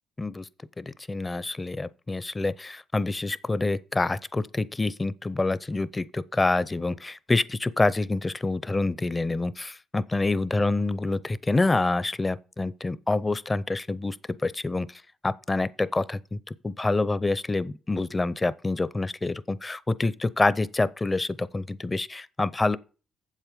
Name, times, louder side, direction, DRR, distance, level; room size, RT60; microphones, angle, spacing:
voice 1, 0.2-0.5 0.8-14.2 14.4-22.8, left 2 dB, 20° left, 0.5 m, -27 dB
7.7 x 7.4 x 5.1 m
cardioid pair, 90°, 0 cm